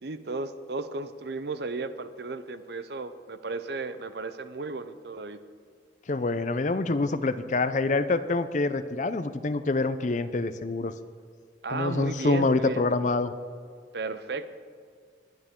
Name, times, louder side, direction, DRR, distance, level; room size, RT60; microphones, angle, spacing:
voice 1, 0.0-5.4 11.6-12.9 13.9-14.5, right 3 dB, 60° right, 11 dB, 0.7 m, -34 dB
voice 2, 6.1-10.9 11.7-13.3, left 3 dB, 40° left, 12 dB, 0.6 m, -26 dB
21.0 x 9.6 x 3.7 m, 2.1 s
head